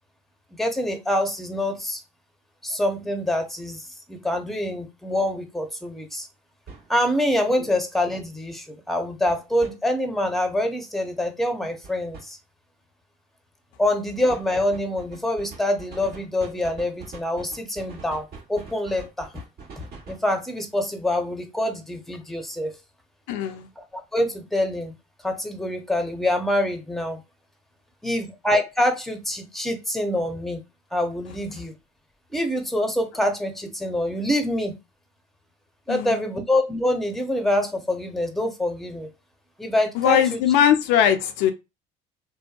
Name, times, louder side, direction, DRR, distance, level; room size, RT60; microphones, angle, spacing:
voice 1, 0.5-2.0 2.6-6.3 6.9-12.4 13.8-19.3 20.1-22.8 23.8-24.9 25.2-27.2 28.0-30.6 30.9-31.7 32.3-34.8 35.9-39.1 39.6-40.4, left 1 dB, ahead, 0.7 m, -25 dB
sound 1, 5.1-5.2 6.7-6.9 9.3-9.7 11.8-12.3 14.3-20.3, right 4 dB, 55° right, 1.3 m, -43 dB
voice 2, 23.3-23.7 35.9-36.2 40.0-41.5, left 9 dB, 75° left, 0.4 m, -20 dB
2.6 x 2.1 x 2.4 m
hypercardioid pair, 65°, 20 cm